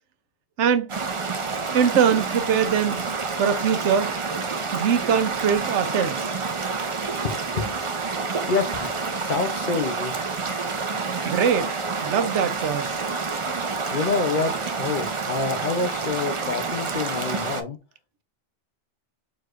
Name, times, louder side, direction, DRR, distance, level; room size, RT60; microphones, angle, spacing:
voice 1, 0.6-0.9 1.7-3.0 3.4-4.1 4.7-6.3 11.2-13.0, right 7 dB, 80° right, 1.0 m, -22 dB
sound 1, 0.9-17.6, right 4 dB, 35° right, 0.6 m, -28 dB
voice 2, 7.2-7.8 8.5-10.2 13.9-17.8, left 4 dB, 50° left, 0.8 m, -27 dB
4.7 x 4.1 x 2.4 m
omnidirectional pair, 1.2 m